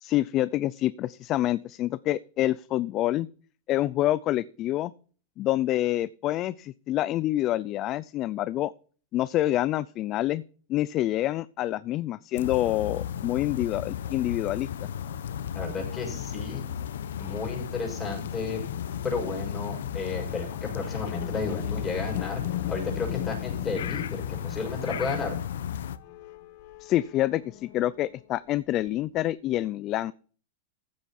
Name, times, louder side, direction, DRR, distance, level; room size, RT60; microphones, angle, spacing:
voice 1, 0.0-3.3 3.7-4.9 5.4-8.7 9.1-10.4 10.7-14.7 26.8-30.1, left 14 dB, 35° left, 18 dB, 0.4 m, -27 dB
sound 1, 12.4-26.0, left 8 dB, 85° left, 0.9 m, -34 dB
voice 2, 15.5-16.6 17.2-18.6 19.0-22.4 22.7-25.3, left 4 dB, 20° left, 1 dB, 6.5 m, -32 dB
sound 2, 20.8-28.2 28.8-28.9, left 15 dB, 55° left, 1.1 m, -39 dB
15.0 x 8.1 x 4.3 m, 0.41 s
supercardioid pair, 140°, 0 cm